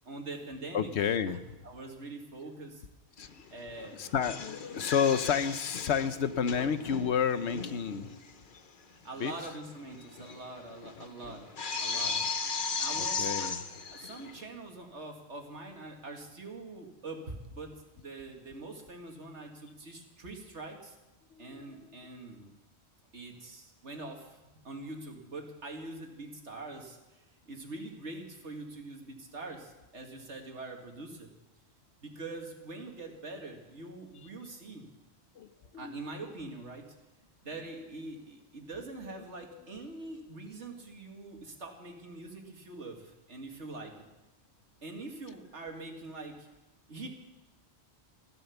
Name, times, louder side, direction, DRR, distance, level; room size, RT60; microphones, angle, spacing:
voice 1, 0.0-0.9 1.3-1.4 1.6-2.8 3.5-4.1 8.9-11.5 11.8-12.4 12.8-13.5 13.9-21.0 21.4-22.5 23.1-31.3 32.0-34.9 35.8-36.9 37.4-44.0 44.8-46.5 46.9-47.1, right 2 dB, 85° right, 2 dB, 2.3 m, -44 dB
voice 2, 0.7-1.4 3.2-3.4 4.0-8.1 9.2-9.3 13.0-13.6 21.3-21.9 24.1-24.2 35.4-35.9 39.5-39.6, left 7 dB, 80° left, 12 dB, 1.1 m, -31 dB
sound 1, 3.2-3.4 3.7-8.3 8.6-8.7 9.2-9.3 9.6-14.4, left 5 dB, 50° left, 1.1 m, -36 dB
15.5 x 11.5 x 7.1 m, 1.0 s
omnidirectional pair, 1.1 m